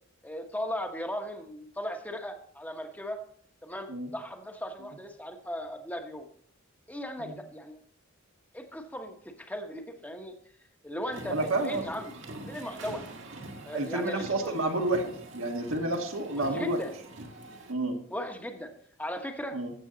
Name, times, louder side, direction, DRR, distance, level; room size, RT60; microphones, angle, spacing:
voice 1, 0.2-3.2 3.6-6.3 6.9-7.8 8.5-10.3 10.8-11.4 11.6-12.1 12.5-13.0 13.6-14.6 16.4-16.9 18.1-18.7 19.0-19.6, equal, 10° left, 4 dB, 1.1 m, -37 dB
sound 1, 11.0-17.7, right 2 dB, 65° right, 1.7 m, -44 dB
voice 2, 11.3-11.8 13.7-16.8 17.7-18.0 19.5-19.7, right 2 dB, 80° right, 3 dB, 1.6 m, -30 dB
13.0 x 7.9 x 3.9 m, 0.62 s
head